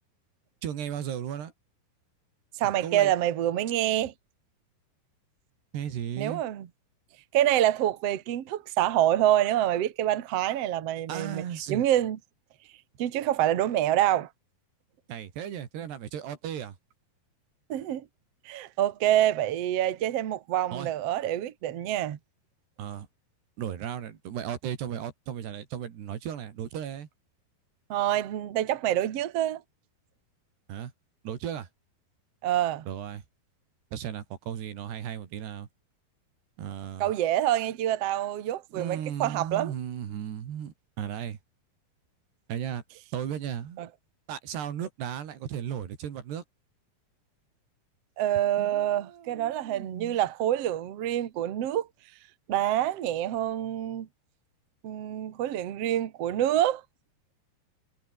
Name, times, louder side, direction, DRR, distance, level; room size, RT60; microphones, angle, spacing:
voice 1, 0.6-1.5 2.6-3.1 5.7-6.4 11.1-11.9 15.1-16.8 20.7-20.9 22.8-23.1 23.6-27.1 30.7-30.9 31.2-31.7 32.9-33.2 33.9-35.7 36.6-37.1 38.7-41.4 42.5-42.8 43.1-43.8 44.3-46.4 48.6-50.2, right 9 dB, 90° right, 4.8 m, -35 dB
voice 2, 2.6-4.1 6.2-6.7 7.3-11.4 11.7-12.2 13.0-14.3 17.7-18.1 18.5-22.2 27.9-29.6 32.4-32.9 37.0-39.7 43.8-43.9 48.2-51.9 52.5-54.1 54.8-56.8, right 12 dB, 55° right, 2.0 m, -26 dB
omnidirectional pair, 4.6 m